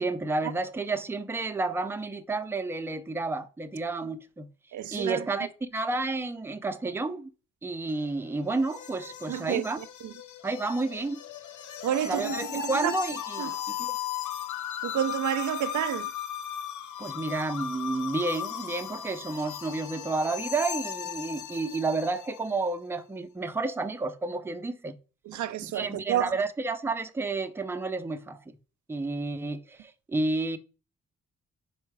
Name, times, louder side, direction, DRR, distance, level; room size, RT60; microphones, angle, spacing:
voice 1, 0.0-4.5 4.9-7.3 7.6-9.8 10.4-11.2 12.1-13.5 13.8-14.0 17.0-24.9 25.3-28.4 28.9-30.6, right 3 dB, 10° right, 0.5 m, -31 dB
voice 2, 4.7-5.3 9.3-10.1 11.8-13.0 13.4-13.5 14.8-16.1 25.3-26.4, right 11 dB, 80° right, 0.5 m, -30 dB
sound 1, 7.9-22.5, left 9 dB, 85° left, 0.7 m, -37 dB
5.5 x 4.5 x 4.7 m
wide cardioid pair, 130°, 29 cm